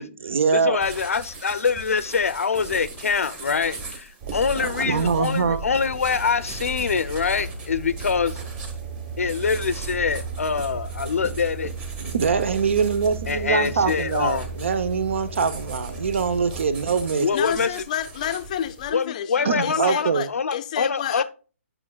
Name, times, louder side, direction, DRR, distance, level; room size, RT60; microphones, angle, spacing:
voice 1, 0.0-0.8 4.3-5.6 12.0-17.3 19.4-20.3, right 5 dB, 60° right, 0.9 m, -24 dB
voice 2, 0.5-8.4 9.2-11.7 13.3-14.5 17.2-17.7 18.9-21.2, left 5 dB, 90° left, 0.7 m, -24 dB
sound 1, 0.8-18.9, right 3 dB, 15° right, 1.1 m, -41 dB
sound 2, 4.2-17.1, right 4 dB, 35° right, 1.3 m, -35 dB
voice 3, 17.3-21.2, left 10 dB, 30° left, 0.5 m, -30 dB
9.0 x 6.0 x 2.4 m
hypercardioid pair, 165°, 7 cm